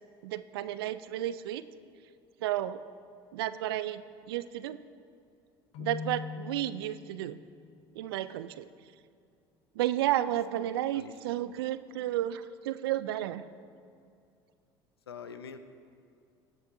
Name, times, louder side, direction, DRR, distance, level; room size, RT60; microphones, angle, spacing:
voice 1, 0.2-1.6 2.4-2.8 3.3-4.8 5.8-7.4 7.9-8.7 9.8-13.4, right 13 dB, 75° right, 14 dB, 0.4 m, -32 dB
Keyboard (musical), 5.7-7.6, left 6 dB, 60° left, 0.8 m, -41 dB
voice 2, 10.5-11.1 15.1-15.6, left 6 dB, 90° left, 10 dB, 0.6 m, -45 dB
17.5 x 7.9 x 2.6 m, 2.4 s
hypercardioid pair, 65°, 13 cm